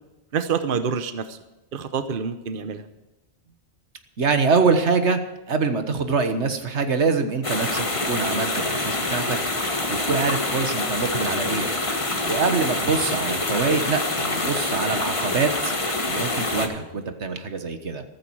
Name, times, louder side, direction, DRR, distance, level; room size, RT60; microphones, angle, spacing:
voice 1, 0.3-1.4 1.7-2.8, right 6 dB, 55° right, 10 dB, 1.0 m, -27 dB
voice 2, 4.2-5.2 5.5-9.4 9.9-11.7 12.2-15.7 16.0-18.0, right 4 dB, 90° right, 8 dB, 1.7 m, -24 dB
sound 1, 7.4-16.7, left 2 dB, 30° left, 1.6 m, -26 dB
14.5 x 14.0 x 4.8 m, 1.1 s
omnidirectional pair, 1.1 m